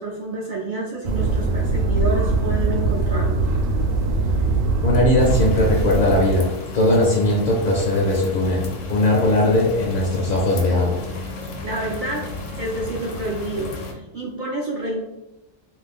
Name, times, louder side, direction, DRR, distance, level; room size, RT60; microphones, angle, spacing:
voice 1, 0.0-3.5 11.6-12.3 12.6-15.0, right 2 dB, 65° right, -3 dB, 0.5 m, -28 dB
sound 1, 1.0-6.3, right 2 dB, 85° right, 1.0 m, -21 dB
voice 2, 4.8-6.5 6.7-11.0, left 1 dB, 55° left, -3 dB, 0.6 m, -19 dB
sound 2, 5.2-13.9, left 2 dB, 75° left, 1.0 m, -33 dB
2.5 x 2.2 x 3.4 m, 0.95 s
omnidirectional pair, 1.3 m